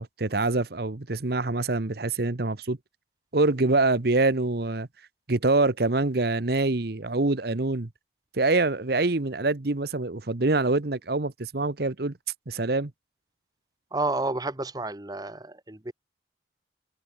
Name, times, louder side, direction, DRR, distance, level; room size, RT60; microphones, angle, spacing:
voice 1, 0.0-2.8 3.3-4.9 5.3-7.9 8.3-12.1 12.5-12.9, right 2 dB, 60° right, 1.1 m, -25 dB
voice 2, 13.9-15.9, right 2 dB, 20° right, 1.2 m, -30 dB
head